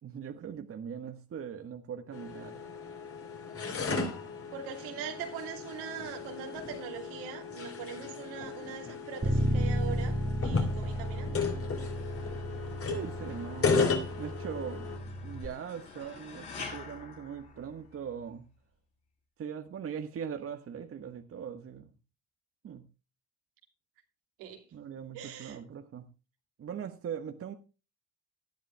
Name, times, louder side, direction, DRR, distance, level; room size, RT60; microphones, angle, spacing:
voice 1, 0.0-2.6 12.7-14.9 15.2-18.5 19.4-21.9 22.6-22.9 24.7-26.1 26.6-27.5, right 8 dB, 45° right, 1.3 m, -40 dB
sound 1, 2.1-15.0, left 4 dB, 45° left, 3.5 m, -35 dB
voice 2, 4.5-12.0 24.4-24.7 25.1-25.6, right 7 dB, 75° right, 2.7 m, -42 dB
Bass guitar, 9.2-15.5, equal, 25° right, 2.1 m, -33 dB
sound 2, 11.9-18.2, left 4 dB, 80° left, 7.2 m, -48 dB
19.0 x 11.0 x 2.2 m
hypercardioid pair, 60°, 32 cm